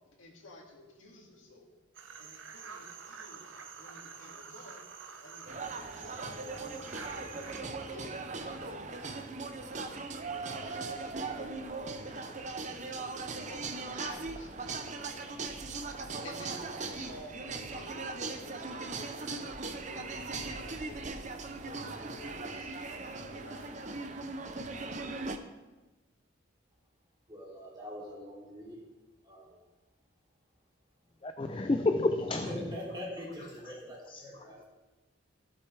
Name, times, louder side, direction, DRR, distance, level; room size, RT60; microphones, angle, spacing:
voice 1, 0.2-1.8 2.2-4.8 5.2-9.9 10.3-11.5 11.8-15.3 16.2-19.6 19.9-21.2 21.6-23.9, left 1 dB, 75° left, -1 dB, 2.2 m, -52 dB
sound 1, 1.9-7.6, right 5 dB, 70° right, 0.9 m, -47 dB
sound 2, 5.5-25.4, right 3 dB, 35° right, 0.6 m, -39 dB
voice 2, 27.3-28.8 29.2-29.6 32.5-34.6, equal, 20° right, -5 dB, 2.8 m, -43 dB
voice 3, 31.2-32.7 34.1-34.2, left 2 dB, 25° left, 7 dB, 0.4 m, -30 dB
16.0 x 7.7 x 3.3 m, 1.1 s
head